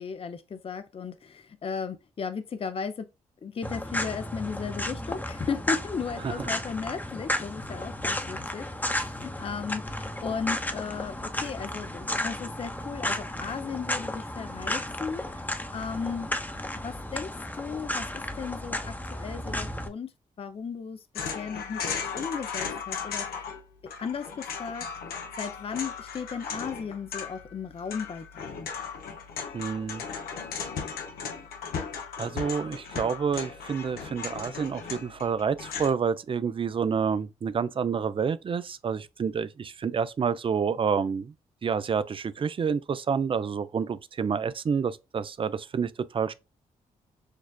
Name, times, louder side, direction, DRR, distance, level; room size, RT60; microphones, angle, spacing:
voice 1, 0.0-3.1 3.4-15.5 15.7-16.3 16.8-17.3 17.6-20.1 20.4-21.0 21.3-21.8 22.1-23.4 24.0-24.9 25.4-28.7, left 6 dB, 40° left, 0.5 m, -35 dB
sound 1, 3.6-19.9, left 1 dB, 10° left, 0.8 m, -33 dB
sound 2, 21.1-23.6 23.9-35.9, left 6 dB, 80° left, 0.8 m, -36 dB
voice 2, 29.5-30.0 32.2-41.3 41.6-46.3, right 6 dB, 35° right, 0.4 m, -28 dB
6.4 x 2.3 x 2.3 m
supercardioid pair, 50°, 15 cm